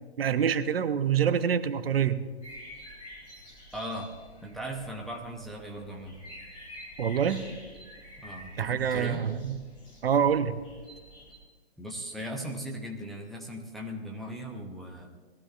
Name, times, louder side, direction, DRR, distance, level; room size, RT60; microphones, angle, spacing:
voice 1, 0.2-2.2 7.0-7.4 8.6-9.6 10.0-10.6, right 8 dB, 65° right, 11 dB, 0.9 m, -26 dB
sound 1, 2.4-11.4, equal, 15° left, 3.1 m, -48 dB
voice 2, 3.7-4.1 4.4-6.2 8.2-9.2 11.8-15.1, equal, ahead, 0 dB, 0.6 m, -38 dB
20.5 x 15.0 x 2.4 m, 1.4 s
figure-of-eight pair, 130°, 32 cm